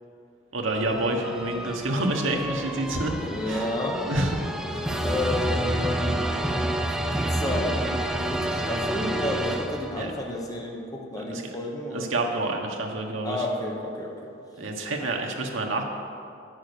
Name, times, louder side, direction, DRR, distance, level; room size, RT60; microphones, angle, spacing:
voice 1, 0.5-3.2 3.5-3.7 4.0-4.4 4.7-5.0 10.0-10.1 11.3-11.5 11.9-13.4 14.6-15.8, right 2 dB, 80° right, 1 dB, 1.1 m, -28 dB
sound 1, 0.7-10.2, right 1 dB, ahead, 0.4 m, -29 dB
voice 2, 3.2-4.0 5.0-6.3 6.5-6.8 7.1-12.1 13.2-14.3, left 1 dB, 20° left, -1 dB, 1.1 m, -31 dB
9.2 x 6.3 x 6.6 m, 2.6 s
head